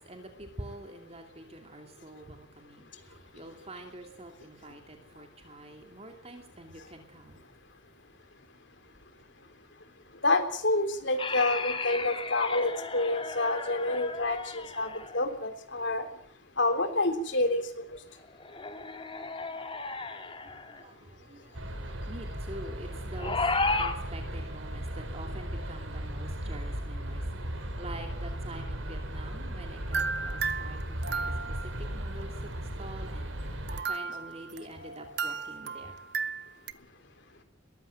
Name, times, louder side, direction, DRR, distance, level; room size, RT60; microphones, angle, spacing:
voice 1, 0.0-7.4 20.3-32.5 32.8-36.0, right 1 dB, 30° right, 4 dB, 2.6 m, -46 dB
voice 2, 10.2-16.1 16.6-18.0, left 2 dB, 65° left, 7 dB, 3.5 m, -28 dB
sound 1, 11.2-15.3 18.2-20.8 23.2-24.0, left 3 dB, 25° left, 2.5 m, -34 dB
sound 2, 21.5-33.8, right 1 dB, 90° right, 4.4 m, -36 dB
sound 3, 29.9-31.8 33.7-36.7, right 5 dB, 60° right, 1.2 m, -34 dB
22.0 x 15.0 x 9.0 m, 0.63 s
head